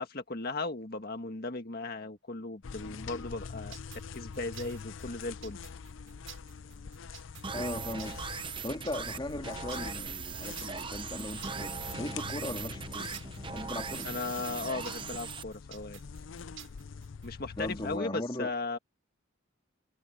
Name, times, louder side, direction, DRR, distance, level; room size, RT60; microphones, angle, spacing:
voice 1, 0.0-3.7 4.1-5.6 14.0-16.0 17.2-18.8, left 3 dB, 50° left, 1.7 m, -37 dB
sound 1, 2.6-18.0, left 5 dB, 75° left, 0.5 m, -45 dB
sound 2, 3.7-17.3, right 12 dB, 90° right, 6.4 m, -51 dB
sound 3, 7.4-15.4, right 5 dB, 25° right, 0.7 m, -39 dB
voice 2, 7.5-8.3 8.6-13.1 13.5-14.1 17.6-18.5, left 1 dB, 25° left, 1.9 m, -38 dB
head